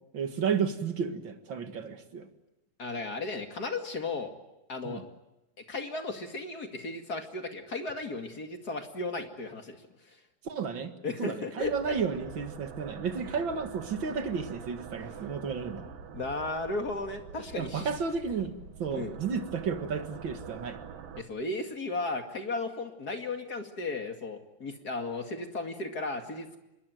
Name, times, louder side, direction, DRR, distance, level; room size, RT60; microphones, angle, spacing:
voice 1, 0.1-2.3 4.8-5.0 10.4-15.9 17.5-20.8, right 6 dB, 45° right, 7 dB, 1.8 m, -32 dB
voice 2, 2.8-4.3 4.7-5.0 5.7-9.8 11.0-12.0 15.2-15.3 16.1-17.9 18.9-19.2 21.2-26.6, left 3 dB, 30° left, 5 dB, 2.2 m, -35 dB
sound 1, 11.6-21.2, right 7 dB, 75° right, 3.6 m, -45 dB
26.5 x 22.0 x 9.2 m, 0.93 s
omnidirectional pair, 4.1 m